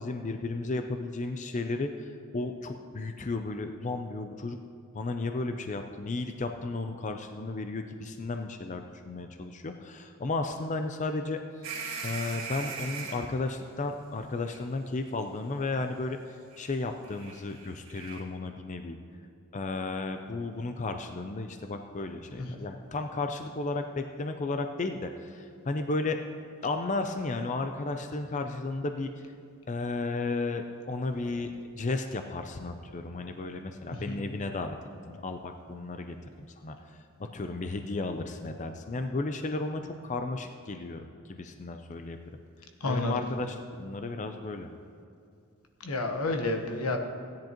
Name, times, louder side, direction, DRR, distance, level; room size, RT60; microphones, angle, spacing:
voice 1, 0.0-4.6 4.9-11.4 12.0-16.2 16.6-19.0 19.5-26.2 26.6-29.1 29.7-34.8 35.0-36.8 37.3-41.0 41.3-42.3 42.9-44.7, left 3 dB, 35° left, 6 dB, 0.5 m, -34 dB
sound 1, 11.6-13.3 14.4-14.6 16.5-16.7 17.0-18.2, right 5 dB, 60° right, 2.4 m, -39 dB
voice 2, 42.8-43.2 45.8-47.0, left 2 dB, 90° left, 3 dB, 1.2 m, -30 dB
16.0 x 10.5 x 3.0 m, 2.4 s
head